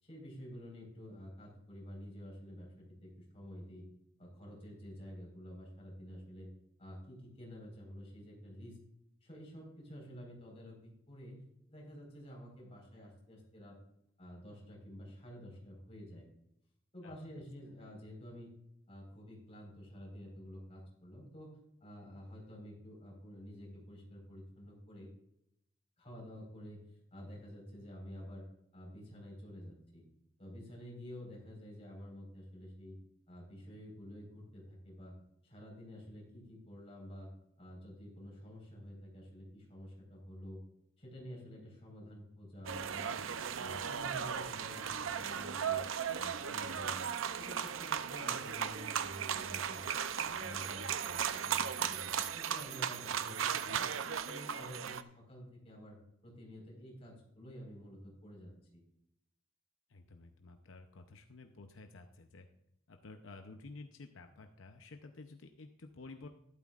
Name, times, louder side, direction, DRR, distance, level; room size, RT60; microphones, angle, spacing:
voice 1, 0.0-3.8 4.2-6.5 6.8-8.8 9.2-11.4 11.7-13.8 14.2-16.2 16.9-18.5 18.9-25.1 26.0-28.4 28.7-30.0 30.4-33.0 33.3-35.1 35.4-37.3 37.6-40.6 41.0-43.1 43.6-45.8 46.1-47.1 47.4-49.8 50.1-53.9 54.2-58.8, equal, 30° left, -2 dB, 4.5 m, -50 dB
sound 1, 42.7-55.0, right 8 dB, 80° right, 0.6 m, -36 dB
voice 2, 52.0-52.3 59.9-62.5 62.9-66.3, left 3 dB, 75° left, 5 dB, 0.7 m, -52 dB
12.5 x 12.0 x 2.5 m, 0.79 s
head